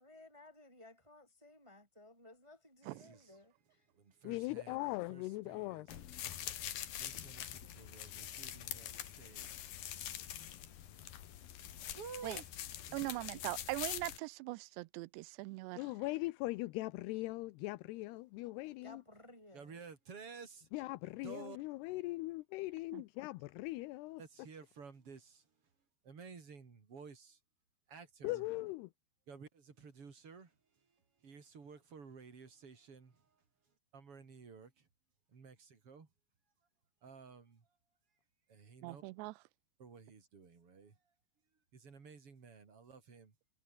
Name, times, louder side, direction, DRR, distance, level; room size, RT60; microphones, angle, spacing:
voice 1, 0.0-3.8 13.3-13.4 18.8-19.8, left 2 dB, 5° right, 3.1 m, -58 dB
voice 2, 2.8-3.4 3.9-5.9 7.0-9.7 11.9-12.4 12.9-13.0 19.5-20.7 21.2-21.6 24.2-25.4 26.0-27.4 27.9-28.4 29.3-30.5 31.2-33.2 33.9-34.9 35.3-36.1 37.0-37.6 38.5-39.0 39.8-41.0 41.7-43.3, right 5 dB, 35° right, 3.9 m, -53 dB
voice 3, 4.2-5.9 15.8-19.0 20.7-24.2 28.2-28.9, left 20 dB, 80° left, 2.6 m, -40 dB
sound 1, 5.9-14.2, left 11 dB, 60° left, 3.3 m, -45 dB
voice 4, 12.9-15.8 22.9-23.0 38.8-39.3, right 21 dB, 80° right, 2.8 m, -41 dB
omnidirectional pair, 5.1 m